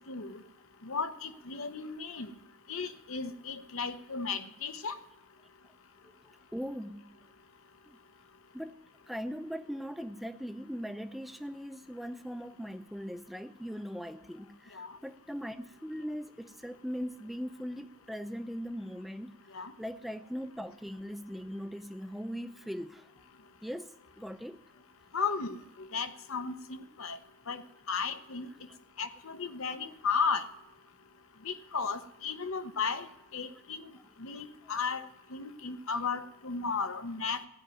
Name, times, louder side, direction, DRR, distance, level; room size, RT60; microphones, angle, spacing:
voice 1, 0.1-0.4 0.8-2.3 2.7-5.0 14.7-14.9 19.5-19.7 25.1-27.2 27.5-27.6 27.9-28.5 29.0-30.5 31.4-33.1 33.3-33.9 34.2-35.0 35.3-37.4, left 5 dB, 70° left, 10 dB, 0.8 m, -34 dB
voice 2, 6.5-7.2 7.9-8.0 8.5-8.8 9.1-19.3 19.8-23.0 23.6-23.9 24.2-24.6 28.4-28.5, equal, ahead, 9 dB, 0.4 m, -40 dB
15.5 x 5.3 x 9.0 m, 0.86 s
head